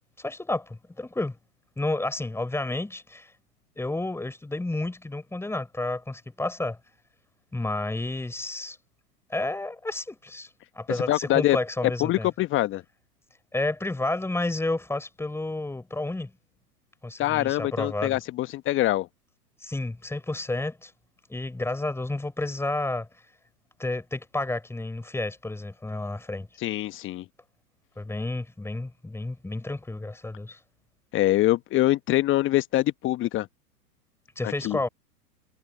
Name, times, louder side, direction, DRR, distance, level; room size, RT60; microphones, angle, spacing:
voice 1, 0.2-1.4 1.8-3.3 3.8-6.8 7.5-8.8 9.3-10.5 10.7-12.3 13.5-16.3 17.0-18.2 19.6-20.9 21.3-23.1 23.8-26.5 28.0-30.6 34.4-34.9, left 2 dB, 5° left, 4.7 m, -31 dB
voice 2, 11.1-11.6 12.0-12.8 17.2-19.1 26.6-27.2 31.1-33.5 34.4-34.8, left 15 dB, 25° left, 1.3 m, -24 dB
figure-of-eight pair, 110°, 48 cm